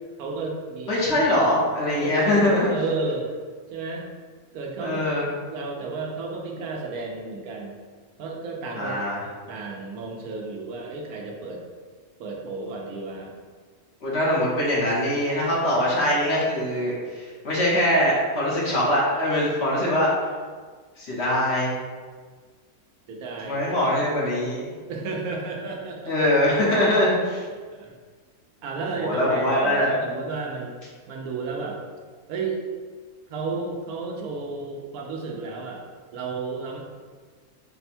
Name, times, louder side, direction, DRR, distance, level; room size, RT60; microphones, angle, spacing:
voice 1, 0.2-1.4 1.9-2.3 2.7-3.3 3.7-4.1 4.5-7.8 8.2-9.1 9.5-11.6 12.2-13.4 23.1-23.6 24.9-26.1 27.7-27.9 28.6-30.7 31.1-31.8 32.3-32.6 33.3-35.8 36.1-36.8, right 3 dB, 90° right, 0 dB, 1.2 m, -32 dB
voice 2, 0.9-2.7 4.8-5.3 8.7-9.2 14.0-20.1 21.0-21.7 23.4-24.7 26.1-27.5 28.9-29.9, left 1 dB, 50° left, -6 dB, 1.1 m, -22 dB
4.2 x 2.2 x 4.2 m, 1.5 s
omnidirectional pair, 1.5 m